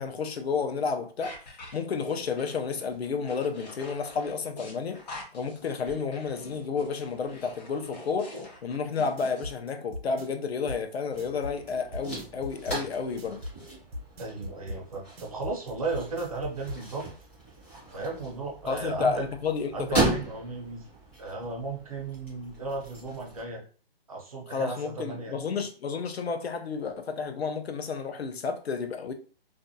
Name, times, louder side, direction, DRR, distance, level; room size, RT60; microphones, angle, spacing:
voice 1, 0.0-1.3 1.7-5.0 5.3-8.3 8.6-13.4 18.7-20.2 24.5-29.1, left 5 dB, 90° left, 0.6 m, -31 dB
sound 1, 1.2-9.5, left 2 dB, 45° left, 0.8 m, -45 dB
sound 2, 8.9-16.8, left 1 dB, 80° right, 0.8 m, -39 dB
sound 3, 11.1-23.4, right 3 dB, 10° left, 0.5 m, -37 dB
voice 2, 14.2-17.1 17.9-19.3 19.7-20.9 21.2-23.6 24.1-25.3, right 3 dB, 35° right, 0.6 m, -35 dB
2.5 x 2.1 x 2.6 m
hypercardioid pair, 165°, 30 cm